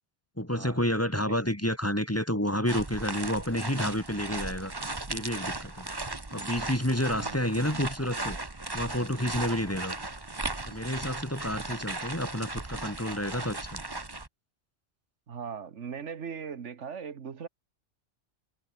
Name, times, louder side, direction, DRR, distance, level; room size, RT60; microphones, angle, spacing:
voice 1, 0.4-4.7 5.1-5.9 6.3-8.4 8.7-10.0 10.6-13.8, equal, 10° left, 3.1 m, -30 dB
sound 1, 2.7-14.3, right 2 dB, 20° right, 1.4 m, -37 dB
voice 2, 15.3-17.5, right 6 dB, 80° right, 1.6 m, -39 dB
omnidirectional pair, 1.2 m